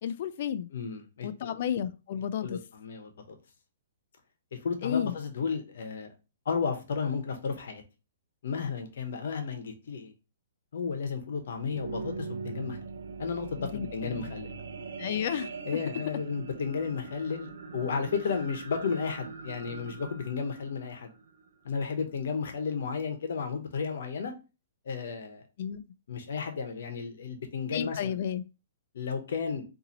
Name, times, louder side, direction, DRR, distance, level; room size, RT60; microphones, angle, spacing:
voice 1, 0.0-0.7 1.2-2.6 4.8-5.1 13.6-14.3 15.0-15.5 25.6-25.8 27.7-28.4, left 9 dB, 50° left, 0.3 m, -32 dB
voice 2, 0.7-1.6 2.4-3.2 4.5-6.1 6.4-7.8 8.4-10.1 10.7-12.8 13.2-14.5 15.7-21.1 21.6-24.3 24.8-25.4 26.1-28.1 28.9-29.6, left 5 dB, 70° left, 0.9 m, -33 dB
sound 1, 11.3-21.9 22.5-22.6, right 4 dB, 70° right, 0.5 m, -42 dB
3.9 x 2.6 x 2.8 m
hypercardioid pair, 150°, 0 cm